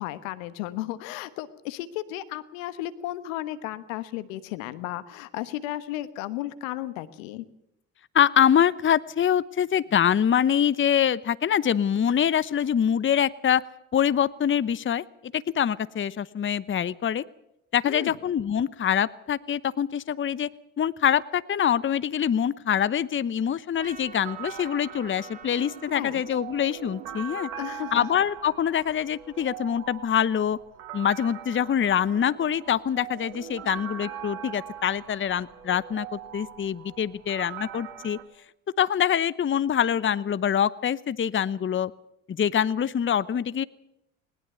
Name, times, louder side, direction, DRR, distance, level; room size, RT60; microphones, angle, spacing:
voice 1, 0.0-7.4 17.8-18.2 25.9-26.2 27.6-28.1, left 15 dB, 75° left, 14 dB, 1.4 m, -34 dB
voice 2, 8.1-13.6 13.9-17.2 17.7-20.5 20.8-27.5 27.9-30.6 30.9-38.2 38.8-41.9 42.3-43.6, left 9 dB, 30° left, 18 dB, 0.9 m, -24 dB
sound 1, 23.7-38.2, right 9 dB, 80° right, 2.3 m, -41 dB
Trumpet, 23.8-28.1, right 4 dB, 20° right, 1.6 m, -49 dB
20.5 x 20.0 x 6.9 m, 0.81 s
hypercardioid pair, 55°, 39 cm